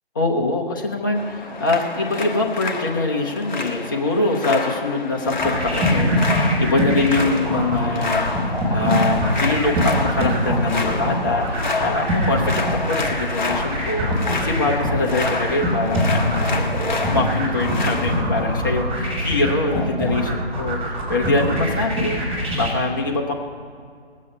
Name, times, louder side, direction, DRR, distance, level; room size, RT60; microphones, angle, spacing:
voice 1, 0.1-22.2 22.5-23.3, left 2 dB, 20° left, 0 dB, 0.7 m, -24 dB
sound 1, 1.1-18.2, left 3 dB, 45° left, 1.2 m, -29 dB
sound 2, 5.3-22.7, equal, 20° right, 4.1 m, -23 dB
19.5 x 8.5 x 5.4 m, 2.1 s
figure-of-eight pair, 160°, 33 cm